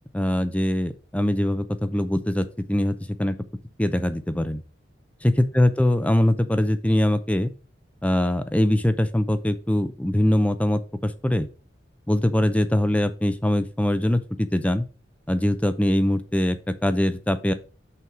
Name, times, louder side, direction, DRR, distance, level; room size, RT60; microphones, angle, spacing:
voice 1, 0.1-3.4 3.8-4.6 5.2-7.5 8.0-11.5 12.1-14.9 15.3-17.5, left 1 dB, 5° left, 11 dB, 0.5 m, -22 dB
5.8 x 4.6 x 5.9 m, 0.35 s
head